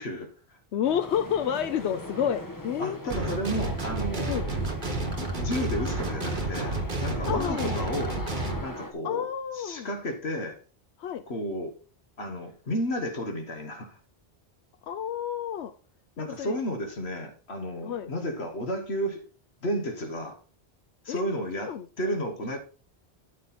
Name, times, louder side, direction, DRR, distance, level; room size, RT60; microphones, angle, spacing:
voice 1, 0.0-0.6 2.8-4.3 5.2-8.2 8.6-9.3 9.5-10.6 11.3-11.7 12.2-14.0 16.2-19.2 19.6-20.4 21.1-22.6, equal, 75° left, 1.6 m, -32 dB
voice 2, 0.7-3.0 4.3-4.5 7.2-7.9 9.0-9.9 11.0-11.2 14.8-15.7 16.2-16.6 17.8-18.1 21.1-21.2 21.6-22.1, left 9 dB, 90° left, 1.0 m, -30 dB
sound 1, 0.8-8.9, left 1 dB, 20° left, 1.3 m, -40 dB
sound 2, 3.1-8.6, right 2 dB, 50° right, 1.7 m, -31 dB
13.0 x 5.2 x 4.2 m
omnidirectional pair, 1.1 m